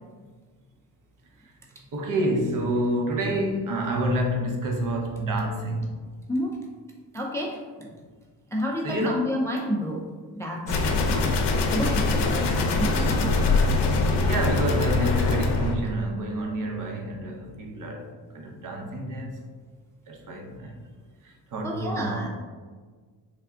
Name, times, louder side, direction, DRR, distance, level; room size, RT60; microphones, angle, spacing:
voice 1, 1.9-5.9 8.8-9.4 14.2-18.1 18.3-19.4 20.1-20.7 21.5-22.3, right 1 dB, 45° right, 3 dB, 0.7 m, -28 dB
voice 2, 6.3-6.6 7.1-7.9 8.5-10.1 10.4-13.3 21.6-22.3, equal, 5° left, -2 dB, 0.3 m, -30 dB
sound 1, 10.7-15.8, left 3 dB, 65° left, 0.6 m, -23 dB
3.4 x 2.3 x 3.6 m, 1.5 s
supercardioid pair, 70°, 45 cm